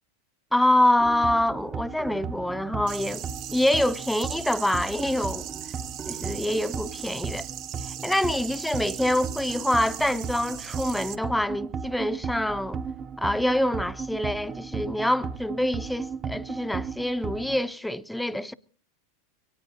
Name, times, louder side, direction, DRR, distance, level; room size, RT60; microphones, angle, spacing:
voice 1, 0.5-5.5 6.1-7.5 7.9-12.8 13.2-18.5, left 1 dB, 5° left, 0.6 m, -26 dB
sound 1, 1.0-17.6, right 6 dB, 30° right, 0.8 m, -36 dB
sound 2, 2.9-11.2, right 11 dB, 50° right, 1.2 m, -39 dB
23.5 x 18.5 x 2.8 m
hypercardioid pair, 95°, 0 cm